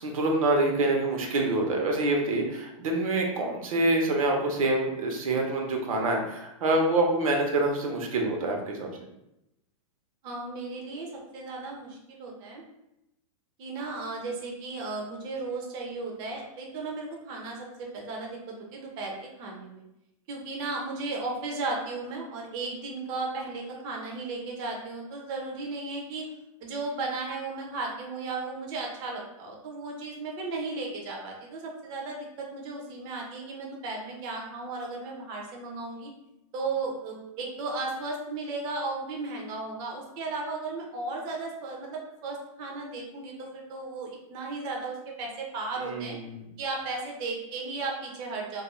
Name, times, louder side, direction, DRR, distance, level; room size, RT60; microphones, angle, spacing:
voice 1, 0.0-8.9 45.8-46.4, right 2 dB, 85° right, 1 dB, 0.7 m, -26 dB
voice 2, 10.2-12.6 13.6-19.8 20.3-26.3 26.6-36.1 36.5-46.2 46.6-48.6, right 3 dB, 25° right, 0 dB, 0.4 m, -35 dB
2.3 x 2.2 x 2.9 m, 0.86 s
supercardioid pair, 155°, 17 cm